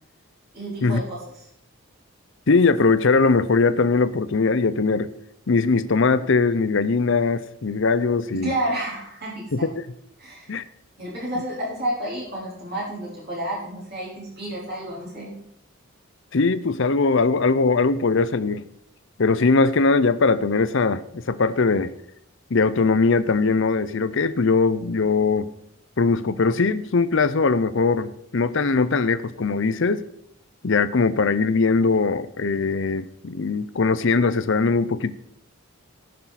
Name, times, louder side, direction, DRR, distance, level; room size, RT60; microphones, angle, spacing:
voice 1, 0.5-1.2 8.4-9.7 10.2-10.5 11.0-15.3, right 1 dB, 50° right, -6 dB, 4.2 m, -30 dB
voice 2, 2.5-5.1 5.5-8.5 9.5-9.6 10.5-10.6 16.3-18.7 19.2-21.9 22.5-25.5 26.0-30.0 30.6-35.1, left 4 dB, 60° left, 14 dB, 0.6 m, -20 dB
18.5 x 6.6 x 4.2 m, 0.74 s
head